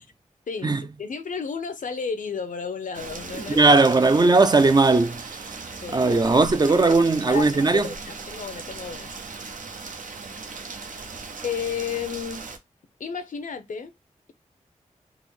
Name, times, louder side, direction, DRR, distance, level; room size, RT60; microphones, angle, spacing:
voice 1, 0.5-3.8 5.8-6.0 7.3-9.1 10.5-10.8 11.4-12.5 13.0-13.9, left 6 dB, 75° left, 0.6 m, -32 dB
Rain, 2.9-12.6, right 4 dB, 75° right, 0.6 m, -38 dB
voice 2, 3.6-5.4 5.9-7.9, right 3 dB, 30° right, 0.4 m, -18 dB
3.7 x 2.0 x 3.1 m
cardioid pair, 45°, 13 cm